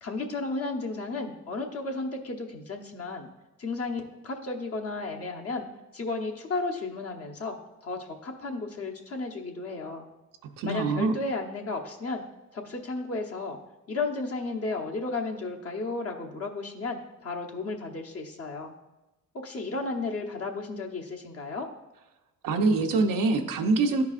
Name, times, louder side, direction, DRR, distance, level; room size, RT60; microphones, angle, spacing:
voice 1, 0.0-3.3 3.6-5.6 5.9-10.0 10.6-12.2 12.5-13.6 13.9-18.7 19.3-21.7, left 3 dB, 45° left, 1 dB, 1.0 m, -33 dB
voice 2, 10.6-11.2 22.4-24.0, right 3 dB, 85° right, 5 dB, 0.8 m, -24 dB
11.5 x 4.7 x 2.5 m, 1.1 s
cardioid pair, 90°, 32 cm